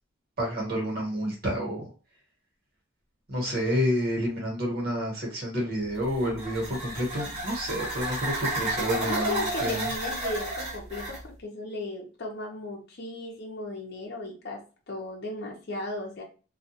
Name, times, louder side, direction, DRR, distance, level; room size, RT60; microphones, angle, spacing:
voice 1, 0.4-1.8 3.3-9.9, equal, 50° right, -2 dB, 1.1 m, -29 dB
sound 1, 6.0-11.2, right 1 dB, 30° right, 0.9 m, -32 dB
voice 2, 9.0-16.2, left 2 dB, 55° left, 0 dB, 0.6 m, -36 dB
2.3 x 2.2 x 2.8 m, 0.34 s
head